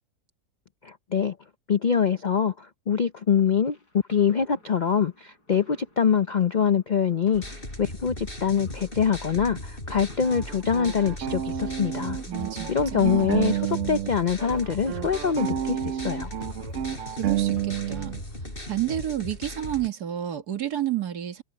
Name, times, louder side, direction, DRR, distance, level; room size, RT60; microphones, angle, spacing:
voice 1, 0.8-1.4 1.7-3.8 4.1-7.4 7.8-12.2 12.7-16.3, left 7 dB, 60° left, 0.4 m, -24 dB
sound 1, 3.4-19.5, left 1 dB, 80° left, 8.2 m, -55 dB
sound 2, 7.3-19.9, left 1 dB, 35° left, 7.0 m, -38 dB
sound 3, 10.2-14.1 14.4-18.2, right 11 dB, 60° right, 0.9 m, -30 dB
voice 2, 12.3-13.4 17.1-18.2 18.7-21.4, right 12 dB, 75° right, 2.3 m, -30 dB
omnidirectional pair, 1.7 m